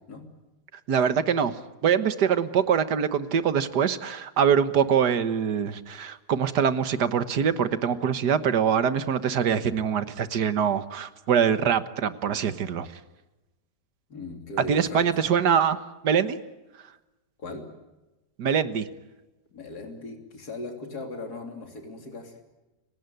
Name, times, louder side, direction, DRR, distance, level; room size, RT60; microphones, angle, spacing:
voice 1, 0.9-1.6 1.8-12.9 14.7-15.8 16.0-16.4 18.4-18.9, right 7 dB, 90° right, 12 dB, 1.9 m, -24 dB
voice 2, 14.1-15.0 17.4-17.6 19.5-22.4, left 2 dB, 70° left, 4 dB, 3.7 m, -38 dB
29.5 x 18.0 x 9.2 m, 1.1 s
omnidirectional pair, 1.7 m